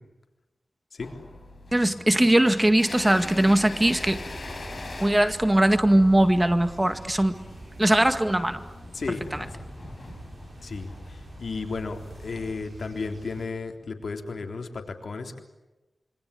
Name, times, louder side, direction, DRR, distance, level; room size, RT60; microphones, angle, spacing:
sound 1, 1.0-12.5, left 2 dB, 45° left, 5.9 m, -42 dB
voice 1, 1.7-4.2 5.0-7.4 7.8-8.6 9.3-9.5, right 1 dB, 15° right, 9 dB, 1.9 m, -20 dB
sound 2, 3.8-13.5, right 3 dB, 55° right, 7.4 m, -45 dB
voice 2, 8.9-9.3 10.6-15.4, left 4 dB, 75° left, 4 dB, 3.5 m, -34 dB
26.5 x 24.5 x 8.4 m, 1.1 s
cardioid pair, 55°, 0 cm